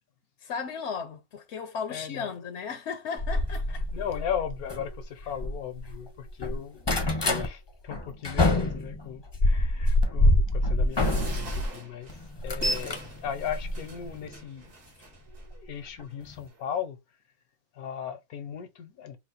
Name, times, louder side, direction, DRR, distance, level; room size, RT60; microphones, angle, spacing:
voice 1, 0.4-3.8, left 6 dB, 65° left, 0.8 m, -35 dB
voice 2, 1.9-2.5 3.9-14.7 15.5-17.0 17.7-19.2, left 9 dB, 85° left, 1.3 m, -37 dB
sound 1, 3.2-6.0 6.3-7.5 7.9-11.7 12.1-14.3 15.3-15.5 16.0-16.1 16.3-16.4, left 1 dB, 30° left, 0.5 m, -26 dB
sound 2, 10.9-15.5 16.1-16.2 16.5-16.6, right 2 dB, 65° right, 1.8 m, -45 dB
4.1 x 2.1 x 4.3 m
omnidirectional pair, 1.5 m